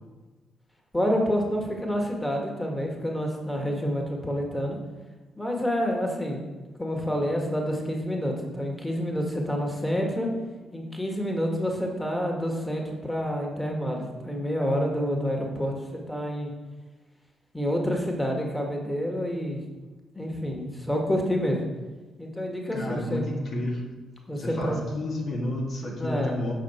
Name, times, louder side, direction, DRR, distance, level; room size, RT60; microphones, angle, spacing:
voice 1, 0.9-4.8 5.4-6.4 6.8-10.3 10.7-16.5 17.5-19.6 20.2-21.6 22.2-23.2 24.3-24.8 26.0-26.4, equal, 10° left, 1 dB, 1.8 m, -28 dB
voice 2, 22.7-23.8 24.4-26.5, left 1 dB, 55° left, -2 dB, 1.9 m, -31 dB
7.7 x 5.8 x 4.5 m, 1.2 s
hypercardioid pair, 45°, 0 cm